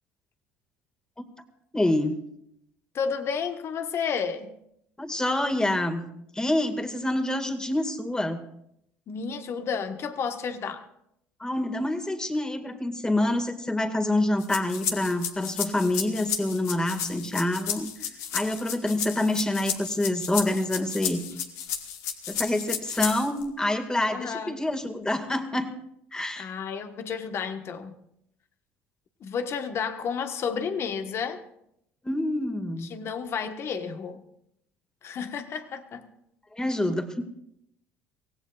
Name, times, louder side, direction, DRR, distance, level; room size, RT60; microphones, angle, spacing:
voice 1, 1.7-2.2 5.0-6.0 6.3-8.4 11.4-17.9 18.3-21.2 22.3-25.7 26.1-26.5 32.0-32.9 36.5-37.2, left 1 dB, 15° left, 2.0 m, -27 dB
voice 2, 2.9-4.5 9.1-10.8 24.1-24.6 26.4-28.0 29.2-31.4 32.8-34.2 35.0-36.1, left 6 dB, 50° left, 1.4 m, -31 dB
sound 1, 14.4-23.4, left 8 dB, 70° left, 1.5 m, -33 dB
24.5 x 17.5 x 2.5 m
hypercardioid pair, 75°, 6 cm